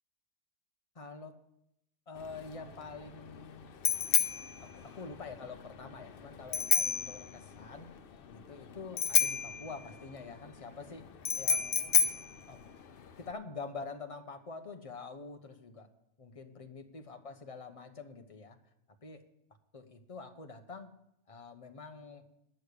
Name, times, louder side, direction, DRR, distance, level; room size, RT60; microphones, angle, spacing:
voice 1, 0.9-1.3 2.1-3.7 4.6-7.9 8.3-11.1 11.4-12.6 13.2-15.9 16.2-18.6 19.0-19.2 19.7-20.9 21.3-22.2, left 4 dB, 30° left, 6 dB, 1.0 m, -46 dB
Bicycle bell, 2.2-13.3, left 7 dB, 55° left, 0.8 m, -32 dB
10.5 x 6.5 x 8.3 m, 0.80 s
omnidirectional pair, 1.2 m